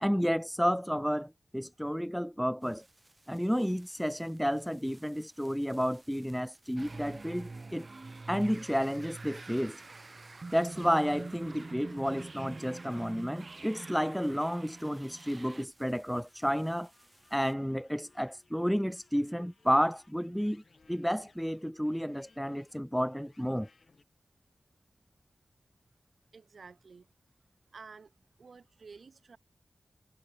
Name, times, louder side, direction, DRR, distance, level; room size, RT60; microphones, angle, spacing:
voice 1, 0.0-2.8 3.3-7.9 8.3-9.8 10.5-16.9 17.3-20.6 20.9-23.7, equal, ahead, 0.6 m, -31 dB
sound 1, 2.6-17.5, right 1 dB, 25° right, 6.4 m, -64 dB
sound 2, 6.8-15.6, right 3 dB, 50° right, 2.0 m, -45 dB
sound 3, 16.0-24.0, left 3 dB, 60° left, 5.6 m, -66 dB
voice 2, 26.3-27.1 27.7-29.4, right 5 dB, 80° right, 7.4 m, -52 dB
wide cardioid pair, 65°, 0 cm